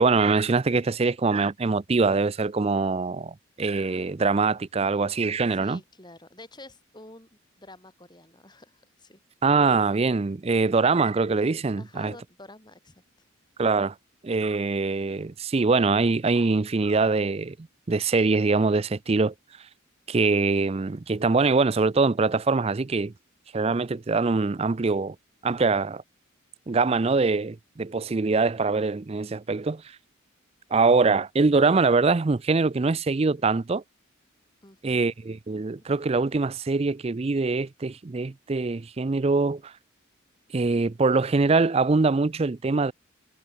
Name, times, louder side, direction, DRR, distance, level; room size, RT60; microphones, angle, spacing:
voice 1, 0.0-5.8 9.4-12.1 13.6-13.9 14.2-17.6 17.9-19.3 20.1-23.1 23.5-25.2 25.4-26.0 26.7-29.8 30.7-33.8 34.8-39.7 40.5-42.9, right 4 dB, 30° right, 0.4 m, -23 dB
voice 2, 5.5-7.3 7.6-9.2 11.8-13.3 34.6-35.1, left 2 dB, 20° left, 5.4 m, -48 dB
head